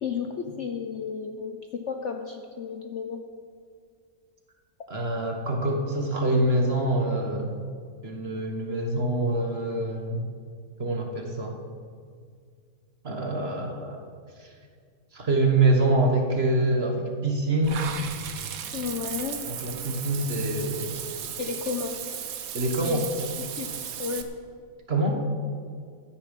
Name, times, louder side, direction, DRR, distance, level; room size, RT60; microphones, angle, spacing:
voice 1, 0.0-3.2 18.7-19.4 21.4-21.9 22.8-23.0 23.4-23.7 24.0-24.3, left 6 dB, 55° left, 4 dB, 0.9 m, -32 dB
voice 2, 4.9-7.5 8.0-10.3 10.8-11.6 13.0-14.0 14.4-14.5 15.1-17.9 19.5-21.1 22.5-23.1 24.9-25.2, right 2 dB, 40° right, 2 dB, 1.5 m, -25 dB
Water / Bathtub (filling or washing), 17.6-24.2, right 8 dB, 60° right, 1.2 m, -35 dB
15.0 x 9.9 x 5.3 m, 2.1 s
omnidirectional pair, 1.8 m